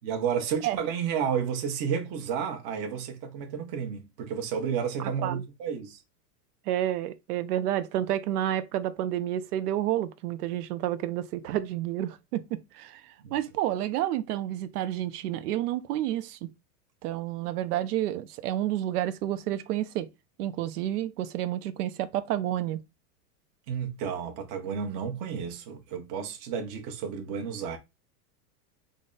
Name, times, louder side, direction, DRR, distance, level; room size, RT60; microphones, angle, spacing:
voice 1, 0.0-6.0 13.2-13.4 23.7-27.8, right 7 dB, 45° right, 1.0 m, -31 dB
voice 2, 5.0-5.4 6.7-16.5 17.0-20.1 20.4-22.8, right 12 dB, 75° right, 0.7 m, -30 dB
3.9 x 2.1 x 3.8 m
supercardioid pair, 135°, 47 cm